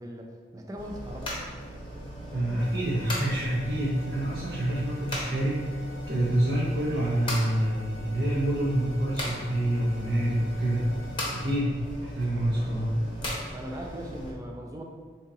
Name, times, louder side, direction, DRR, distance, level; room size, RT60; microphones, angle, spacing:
voice 1, 0.0-1.3 12.5-12.8 13.5-14.8, equal, 20° right, 1 dB, 0.4 m, -40 dB
sound 1, 0.8-14.3, equal, 25° left, 0.8 m, -38 dB
voice 2, 2.3-12.9, right 1 dB, 65° right, -7 dB, 0.7 m, -27 dB
sound 2, 2.6-11.6, left 2 dB, 80° left, 0.5 m, -49 dB
4.3 x 2.8 x 3.6 m, 1.5 s
head